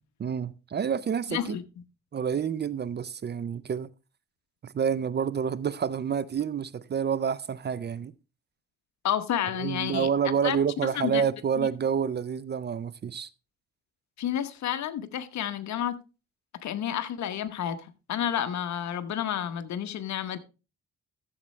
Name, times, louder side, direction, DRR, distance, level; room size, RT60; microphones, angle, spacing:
voice 1, 0.2-1.6 2.1-3.9 4.6-8.1 9.6-13.3, right 7 dB, 35° right, 0.5 m, -28 dB
voice 2, 1.3-1.6 9.0-10.1 10.4-10.6 10.9-11.2 11.6-11.7 14.2-16.0 16.6-20.4, left 10 dB, 65° left, 1.0 m, -30 dB
13.5 x 7.3 x 3.2 m
cardioid pair, 90°, 30 cm